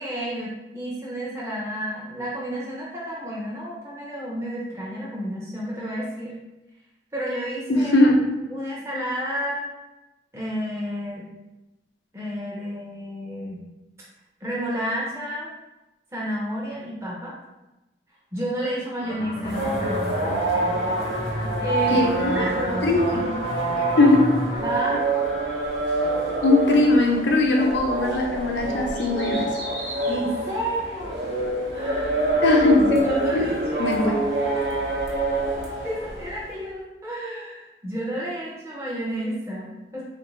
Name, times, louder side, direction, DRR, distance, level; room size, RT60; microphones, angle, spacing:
voice 1, 0.0-6.3 7.1-8.1 8.5-9.6 10.3-11.2 12.1-13.6 14.4-15.5 16.1-17.3 18.3-20.3 20.7-20.8 21.1-21.3 21.6-22.0 22.3-22.8 24.6-25.1 30.1-31.4 31.7-32.3 33.0-34.0 35.8-40.0, equal, 15° right, -6 dB, 0.6 m, -31 dB
voice 2, 7.7-8.2 21.9-22.5 22.8-23.4 23.8-24.3 26.4-29.6 32.4-33.5 33.8-34.2, left 2 dB, 80° left, 1 dB, 0.6 m, -20 dB
sound 1, 19.0-24.7, equal, 35° left, 0.5 m, -32 dB
sound 2, 19.4-36.4, right 2 dB, 75° right, 0.9 m, -26 dB
3.9 x 2.5 x 3.1 m, 1.0 s
head